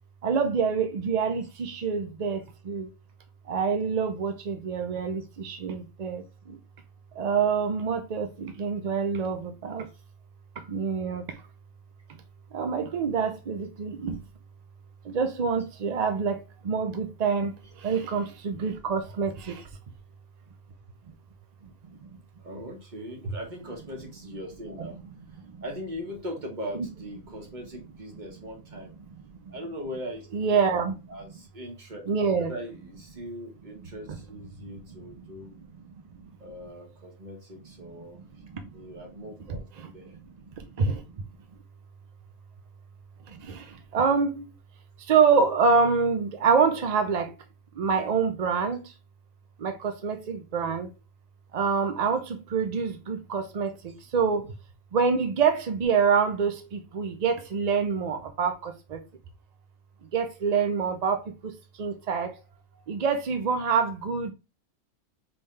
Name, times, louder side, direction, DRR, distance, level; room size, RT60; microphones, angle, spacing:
voice 1, 0.2-2.9 3.5-6.6 7.2-9.9 10.7-11.2 12.5-14.2 15.1-16.4 16.6-19.6 24.8-24.9 30.3-30.9 32.1-32.5 40.6-41.0 43.3-44.5 45.1-47.3 47.8-48.8 49.6-50.9 51.5-54.5 54.9-59.0 60.1-61.5 61.8-62.3 62.9-64.3, right 5 dB, 60° right, 0.4 m, -26 dB
voice 2, 22.4-25.0 25.6-28.9 29.5-30.3 30.8-32.0 32.4-35.5 36.4-38.2 38.7-39.7 39.9-40.2, equal, 35° right, 1.3 m, -39 dB
4.3 x 3.6 x 3.2 m
omnidirectional pair, 1.4 m